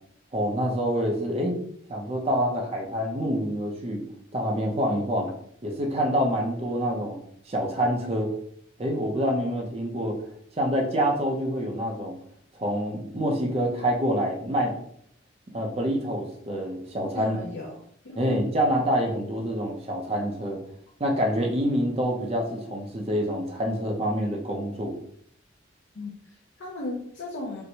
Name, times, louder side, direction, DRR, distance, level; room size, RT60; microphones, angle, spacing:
voice 1, 0.3-1.5 1.9-4.0 4.3-5.3 5.6-8.3 8.8-10.2 10.5-12.2 12.6-14.7 15.5-17.3 18.2-20.6 21.0-25.0, equal, 30° right, 1 dB, 0.5 m, -26 dB
voice 2, 17.1-18.2 25.9-27.6, left 2 dB, 70° left, -2 dB, 0.6 m, -36 dB
4.3 x 2.1 x 2.7 m, 0.65 s
head